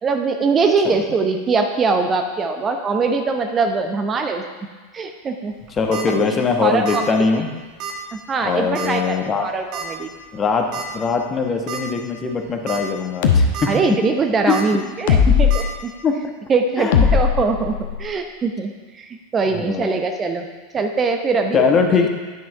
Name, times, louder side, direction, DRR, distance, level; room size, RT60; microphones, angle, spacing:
voice 1, 0.0-4.4 4.9-5.5 6.3-7.0 8.1-10.1 13.7-15.9 16.5-20.5 20.7-21.7 22.0-22.1, right 4 dB, 25° right, 5 dB, 0.8 m, -22 dB
sound 1, 5.6-6.0 6.8-7.1 7.4-7.5 7.8-7.9 8.7-9.0 9.7-9.8 10.7-10.9 11.3-11.4 11.7-11.8 12.5-12.8 13.2-13.7 14.5-14.6 15.5-15.6, right 7 dB, 45° right, 1.8 m, -30 dB
voice 2, 5.8-7.5 8.4-9.5 10.3-10.7 10.9-13.7 14.5-14.6 15.3-15.4 16.0-16.2 16.8-17.0 19.5-19.9 21.5-22.1, left 5 dB, 25° left, 3 dB, 1.2 m, -21 dB
sound 2, 13.2-13.5 15.1-15.6 16.9-18.1, left 6 dB, 60° left, 0.9 m, -16 dB
9.6 x 6.2 x 4.6 m, 1.4 s
figure-of-eight pair, 85°, 0 cm